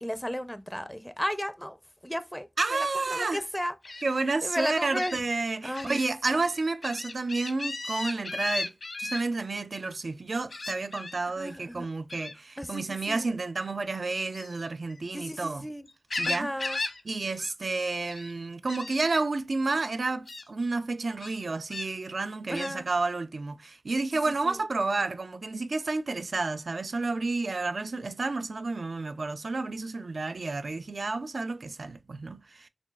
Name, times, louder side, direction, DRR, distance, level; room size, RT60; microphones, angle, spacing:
voice 1, 0.0-1.8 2.0-3.8 4.4-5.3 5.6-6.0 11.4-11.9 12.6-13.4 15.1-15.9 16.3-16.8 22.5-22.9 24.4-24.6, equal, 5° left, 0.4 m, -34 dB
voice 2, 2.6-3.4 4.0-8.7 9.0-15.7 16.2-16.5 17.1-32.7, right 3 dB, 70° right, 0.3 m, -30 dB
Gull seagull, 3.8-4.0 4.9-5.2 5.7-6.0 6.4-9.2 10.5-11.2 12.1-12.4 14.2-15.5 15.9-17.0 17.2-17.5 17.8-18.3 18.7-18.9 19.7-19.8 20.3-20.4 21.2-21.9 22.5-22.7, left 3 dB, 85° left, 1.0 m, -36 dB
5.9 x 2.4 x 2.2 m
wide cardioid pair, 75°, 0 cm